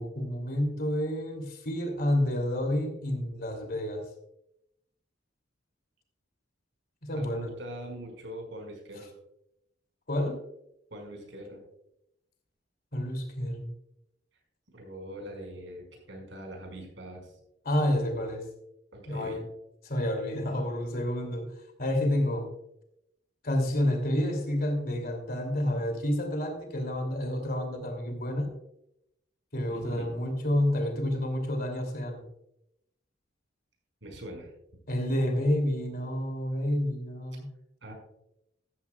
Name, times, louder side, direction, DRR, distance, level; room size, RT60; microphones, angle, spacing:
voice 1, 0.0-4.1 7.0-7.5 10.1-10.4 12.9-13.7 17.6-18.5 19.1-19.4 19.8-21.5 21.8-22.5 23.4-28.5 29.5-32.2 34.9-37.5, left 1 dB, 55° left, 5 dB, 2.8 m, -29 dB
voice 2, 7.2-9.1 10.9-11.6 14.7-17.3 18.9-19.5 29.7-30.1 34.0-34.5 37.8-37.9, right 1 dB, 75° right, 2 dB, 5.2 m, -42 dB
14.0 x 13.5 x 2.3 m, 0.81 s
head